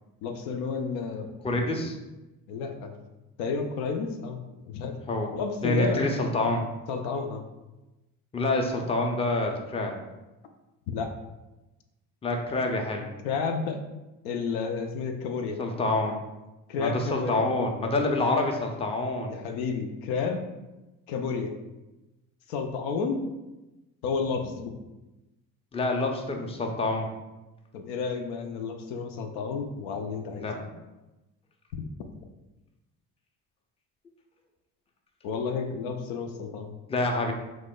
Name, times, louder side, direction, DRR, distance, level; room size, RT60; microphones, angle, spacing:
voice 1, 0.2-1.8 2.5-2.9 3.4-5.0 5.3-6.0 6.9-7.4 10.9-11.1 13.2-13.8 14.2-15.6 16.7-17.5 18.0-18.4 19.3-20.4 21.1-21.5 22.5-23.3 24.0-24.7 27.7-30.5 31.7-31.8 35.2-36.7, left 5 dB, 75° left, 5 dB, 0.5 m, -31 dB
voice 2, 1.4-2.0 5.1-5.3 5.6-6.7 8.3-9.9 12.2-13.1 15.6-16.2 16.8-19.4 25.7-27.1 30.3-30.6 36.9-37.3, left 2 dB, 15° left, 2 dB, 0.5 m, -27 dB
3.0 x 2.1 x 3.6 m, 1.0 s
hypercardioid pair, 55°, 40 cm